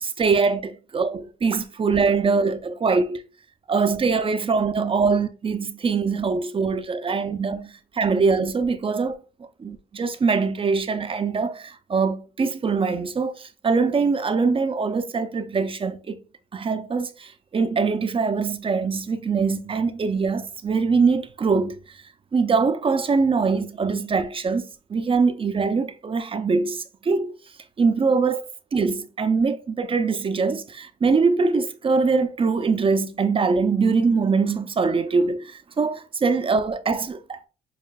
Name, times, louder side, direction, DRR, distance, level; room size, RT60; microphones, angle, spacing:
voice 1, 0.0-3.2 3.7-16.2 16.5-21.8 22.3-24.6 24.9-27.4 27.8-28.4 28.7-37.5, right 4 dB, 30° right, 0.5 m, -23 dB
6.5 x 2.4 x 2.3 m
cardioid pair, 70°, 17 cm